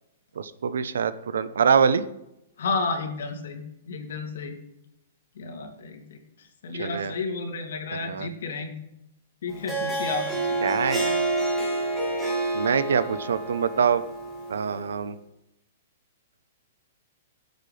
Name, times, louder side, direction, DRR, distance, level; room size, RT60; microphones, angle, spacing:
voice 1, 0.4-2.0 6.8-7.1 8.1-8.3 10.6-11.3 12.5-14.0 14.5-15.1, right 6 dB, 90° right, 14 dB, 0.8 m, -24 dB
voice 2, 2.6-4.6 5.4-8.8 9.4-10.6, left 4 dB, 75° left, 3 dB, 2.6 m, -32 dB
Harp, 9.5-14.9, right 2 dB, ahead, 2.5 m, -28 dB
18.0 x 8.0 x 3.4 m, 0.85 s
hypercardioid pair, 155°, 0 cm